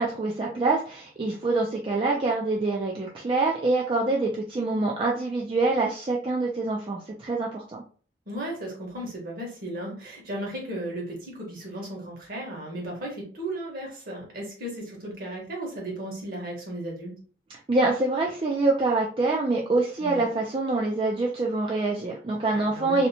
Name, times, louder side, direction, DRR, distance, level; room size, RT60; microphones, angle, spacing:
voice 1, 0.0-7.8 17.7-23.1, right 3 dB, 30° right, -2 dB, 0.3 m, -25 dB
voice 2, 8.3-17.2 20.0-20.3 22.5-23.0, right 1 dB, 50° right, -1 dB, 1.1 m, -35 dB
2.7 x 2.1 x 2.7 m, 0.41 s
head